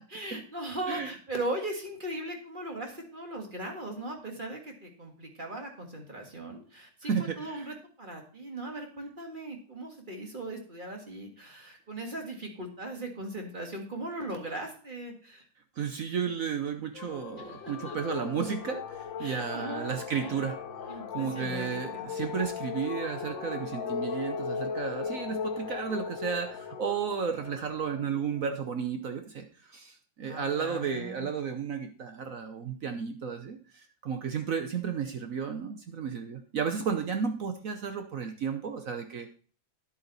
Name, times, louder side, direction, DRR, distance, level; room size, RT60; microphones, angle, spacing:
voice 1, 0.1-15.5 17.4-18.2 19.2-20.0 20.2-20.4 20.9-22.1 30.2-31.3, right 1 dB, 25° right, 2 dB, 1.7 m, -39 dB
voice 2, 7.1-7.7 15.8-20.6 20.9-39.3, right 6 dB, 60° right, 6 dB, 1.0 m, -33 dB
sound 1, 16.9-28.8, left 6 dB, 75° left, 1.9 m, -38 dB
10.0 x 8.3 x 4.0 m, 0.40 s
omnidirectional pair, 2.1 m